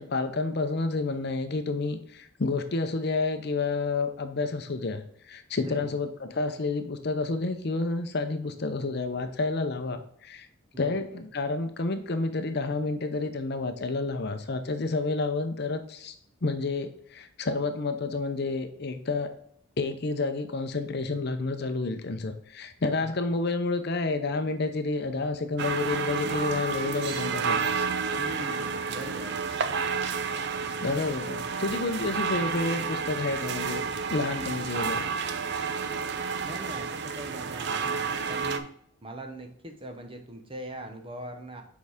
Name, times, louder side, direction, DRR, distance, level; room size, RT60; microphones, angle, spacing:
voice 1, 0.0-10.5 10.8-16.1 16.4-19.3 19.8-28.2 30.8-33.8 34.1-35.1, left 3 dB, 50° left, 8 dB, 0.6 m, -30 dB
voice 2, 5.6-6.0 10.7-11.0 23.0-23.1 28.2-29.4 36.4-38.7 39.0-41.6, right 1 dB, 25° right, 5 dB, 0.9 m, -41 dB
sound 1, 25.6-38.6, right 5 dB, 55° right, 0.5 m, -30 dB
6.6 x 4.7 x 3.5 m, 0.65 s
head